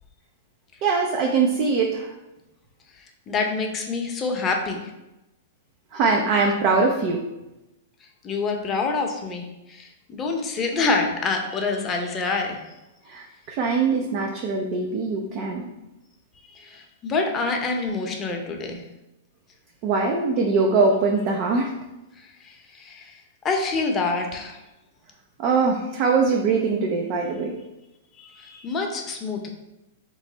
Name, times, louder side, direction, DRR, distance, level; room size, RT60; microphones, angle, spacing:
voice 1, 0.8-2.1 5.9-7.2 13.1-15.7 19.8-21.7 25.4-27.6, right 4 dB, 45° right, 1 dB, 0.5 m, -22 dB
voice 2, 3.0-4.8 8.2-12.6 16.5-18.8 22.4-23.2 23.4-24.6 28.2-29.5, left 3 dB, 25° left, 2 dB, 0.7 m, -27 dB
3.3 x 3.1 x 3.9 m, 0.97 s
hypercardioid pair, 115°, 0 cm